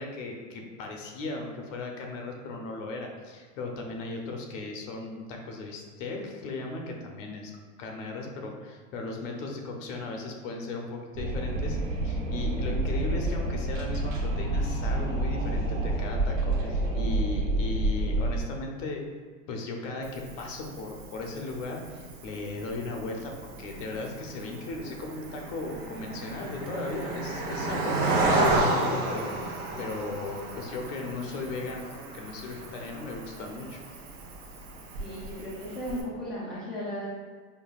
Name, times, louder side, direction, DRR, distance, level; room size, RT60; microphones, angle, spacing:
voice 1, 0.0-11.8 12.0-19.0 19.5-33.8, left 3 dB, 70° left, 1 dB, 0.8 m, -37 dB
Wind, 11.1-18.4, right 1 dB, 75° right, 1.0 m, -28 dB
Cricket, 20.0-36.0, right 2 dB, 50° right, 0.7 m, -33 dB
voice 2, 35.0-37.1, equal, ahead, -9 dB, 0.3 m, -36 dB
5.3 x 2.2 x 2.3 m, 1.5 s
supercardioid pair, 160°, 39 cm